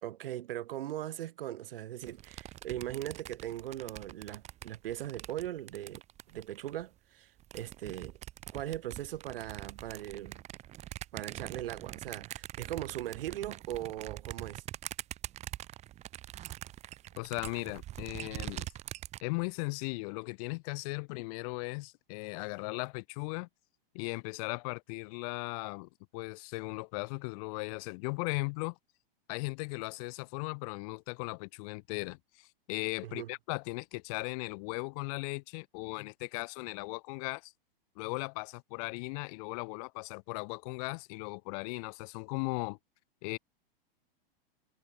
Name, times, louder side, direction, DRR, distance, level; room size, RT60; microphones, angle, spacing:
voice 1, 0.0-6.0 6.3-8.2 8.5-10.4 11.1-14.6 33.0-33.3, right 13 dB, 70° right, 2.7 m, -39 dB
sound 1, 2.0-6.8 7.4-19.2, right 13 dB, 25° right, 1.4 m, -44 dB
voice 2, 17.2-18.7 19.2-23.5 23.9-28.8 29.3-37.5 38.0-42.8 43.2-43.4, left 31 dB, 40° left, 1.1 m, -37 dB
supercardioid pair, 155°, 29 cm